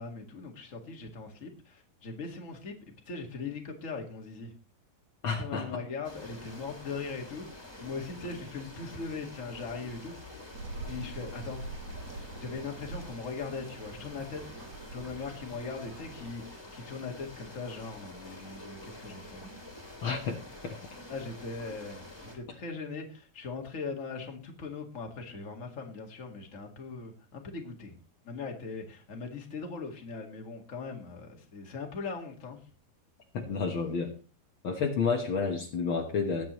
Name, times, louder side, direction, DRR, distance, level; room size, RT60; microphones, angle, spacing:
voice 1, 0.0-4.5 5.3-10.2 10.8-11.6 12.4-14.4 14.9-19.4 21.1-28.0 28.2-32.7, left 4 dB, 35° left, 2 dB, 1.3 m, -40 dB
voice 2, 5.2-5.7 20.0-20.8 33.3-34.1 34.6-36.4, left 5 dB, 80° left, 2 dB, 1.1 m, -30 dB
sound 1, 6.0-22.4, left 1 dB, 5° left, 2.7 m, -48 dB
sound 2, 10.5-16.3, right 3 dB, 60° right, 1.8 m, -44 dB
20.0 x 9.1 x 3.1 m, 0.35 s
omnidirectional pair, 4.5 m